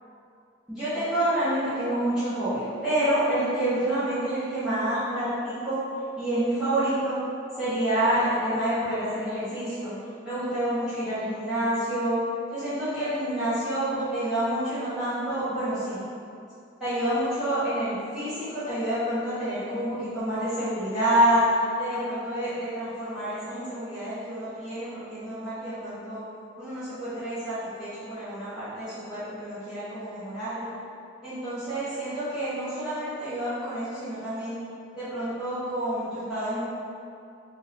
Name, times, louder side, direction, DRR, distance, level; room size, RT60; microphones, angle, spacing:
voice 1, 0.7-5.8 6.2-7.2 7.6-9.9 10.2-12.2 12.5-16.0 16.8-21.4 21.8-26.2 26.6-30.7 31.2-34.6 34.9-36.6, right 1 dB, 5° right, -18 dB, 1.2 m, -28 dB
3.7 x 2.7 x 2.7 m, 2.5 s
head